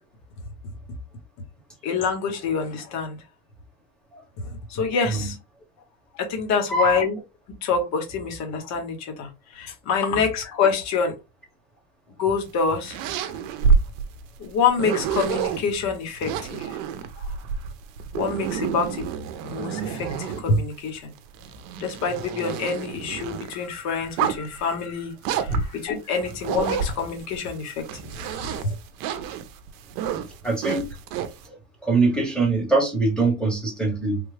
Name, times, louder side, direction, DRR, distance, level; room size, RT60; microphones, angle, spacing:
voice 1, 1.8-3.2 4.7-5.4 6.1-7.2 7.6-11.2 12.2-13.0 14.4-16.8 18.1-19.0 19.4-21.1 21.8-28.7, left 5 dB, 45° left, 1.1 m, -26 dB
voice 2, 6.7-7.0 25.5-25.6 30.4-30.9 31.4-31.6 31.8-34.2, right 3 dB, ahead, 1.0 m, -23 dB
sound 1, 12.5-15.6 16.2-20.6 21.2-23.5 24.0-24.6 25.2-27.4 27.8-31.4, right 7 dB, 60° right, 0.7 m, -28 dB
3.5 x 2.2 x 3.3 m
cardioid pair, 150°, 39 cm